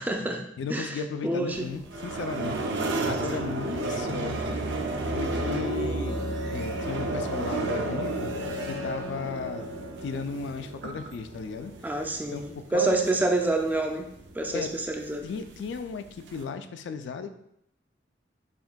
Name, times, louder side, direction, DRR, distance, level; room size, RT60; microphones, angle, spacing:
voice 1, 0.0-0.4 0.7-1.7 3.3-3.5 11.8-14.1 14.3-15.3, right 2 dB, 10° right, 3 dB, 0.4 m, -28 dB
voice 2, 0.6-4.6 5.1-8.3 8.6-9.7 10.0-11.7 12.3-12.4 12.7-13.1 14.5-14.7 15.2-17.3, left 5 dB, 75° left, 9 dB, 0.3 m, -35 dB
sound 1, 1.5-16.4, right 2 dB, 70° right, 0.5 m, -33 dB
Wind instrument woodwind instrument, 6.1-10.2, left 1 dB, 40° left, 0.8 m, -37 dB
5.7 x 2.6 x 2.2 m, 0.77 s
head